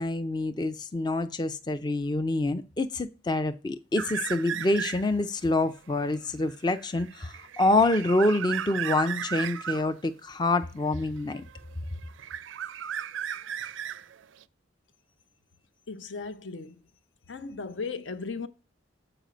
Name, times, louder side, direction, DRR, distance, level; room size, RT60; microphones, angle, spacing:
voice 1, 0.0-11.4, left 2 dB, 20° left, 0.4 m, -27 dB
sound 1, 4.0-5.3 5.7-9.9 10.9-11.7 12.0-14.4, right 9 dB, 85° right, 0.4 m, -35 dB
voice 2, 15.9-16.8 17.3-18.5, left 4 dB, 70° left, 0.7 m, -36 dB
7.9 x 4.8 x 5.1 m
head